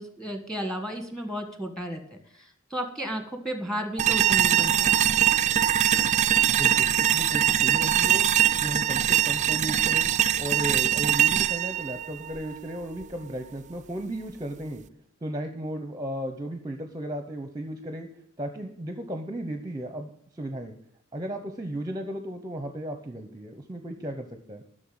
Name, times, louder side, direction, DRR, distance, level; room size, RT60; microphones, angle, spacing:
voice 1, 0.0-2.0 2.3-5.0, equal, 5° left, 7 dB, 1.6 m, -33 dB
sound 1, 4.0-13.0, right 10 dB, 35° right, 0.4 m, -22 dB
voice 2, 6.5-8.3 8.6-10.1 10.4-14.8 15.2-18.1 18.4-20.7 21.1-24.6, right 1 dB, 20° right, 7 dB, 0.8 m, -35 dB
11.5 x 6.6 x 8.7 m, 0.68 s
head